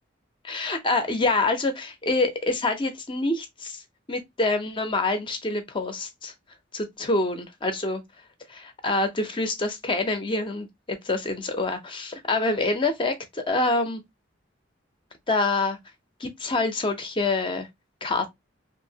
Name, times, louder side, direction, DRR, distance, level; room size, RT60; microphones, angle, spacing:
voice 1, 0.4-3.8 4.1-6.3 6.7-8.0 8.5-14.0 15.3-15.8 16.2-17.7 18.0-18.3, left 2 dB, 25° left, 0.5 m, -26 dB
2.8 x 2.5 x 2.7 m
head